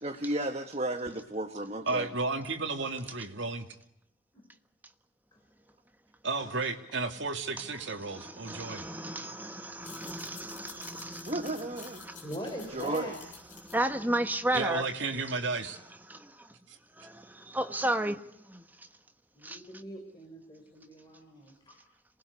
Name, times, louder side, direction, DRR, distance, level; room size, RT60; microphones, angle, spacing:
voice 1, 0.0-2.1 10.9-12.0 12.6-13.1, right 1 dB, 30° right, 1.5 m, -34 dB
voice 2, 1.9-3.7 6.2-8.8 14.5-15.8 16.7-16.8, right 3 dB, 55° right, 2.7 m, -33 dB
voice 3, 6.4-7.1 7.3-7.4 8.6-8.7 12.2-13.2 19.3-21.8, equal, 20° left, 4.5 m, -43 dB
voice 4, 8.0-11.5 12.0-12.3 13.5-14.9 16.1-16.5 16.9-18.9 19.4-19.6, right 1 dB, 10° right, 1.2 m, -33 dB
sound 1, 9.7-14.9, left 6 dB, 40° left, 7.3 m, -51 dB
27.0 x 20.0 x 8.2 m
head